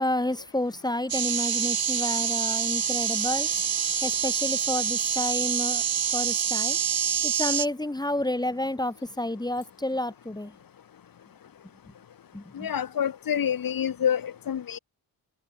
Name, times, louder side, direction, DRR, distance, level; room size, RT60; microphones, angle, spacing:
voice 1, 0.0-3.5 4.0-5.8 6.1-6.8 7.2-10.6 12.3-12.7, left 1 dB, 10° left, 2.5 m, -30 dB
sound 1, 1.1-7.7, right 8 dB, 60° right, 5.5 m, -26 dB
voice 2, 12.5-14.8, left 8 dB, 55° left, 2.2 m, -27 dB
cardioid pair, 105°, 40 cm